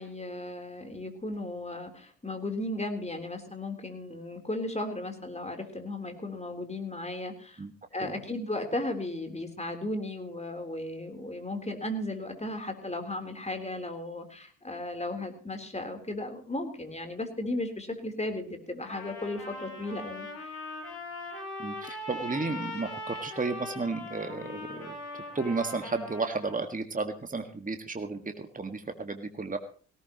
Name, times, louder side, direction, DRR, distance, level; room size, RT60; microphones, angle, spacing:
voice 1, 0.0-7.6 7.9-20.5, left 1 dB, 15° left, 5 dB, 3.7 m, -35 dB
Trumpet, 18.8-26.6, left 1 dB, 60° left, 6.2 m, -40 dB
voice 2, 21.6-29.6, right 3 dB, 20° right, 7 dB, 1.8 m, -33 dB
18.5 x 17.5 x 3.0 m, 0.40 s
hypercardioid pair, 45°, 43 cm